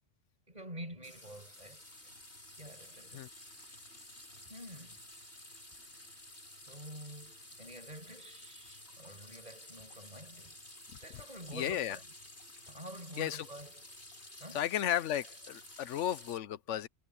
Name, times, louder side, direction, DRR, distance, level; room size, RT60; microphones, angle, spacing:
voice 1, 0.5-1.8 2.6-3.3 4.5-5.1 6.4-10.6 11.0-12.1 12.7-13.9 14.4-14.7, right 1 dB, 35° right, 5.8 m, -48 dB
sound 1, 1.0-16.4, left 1 dB, 65° left, 7.9 m, -53 dB
voice 2, 11.5-12.0 13.2-13.4 14.5-16.9, left 11 dB, 90° left, 1.0 m, -34 dB
omnidirectional pair, 1.2 m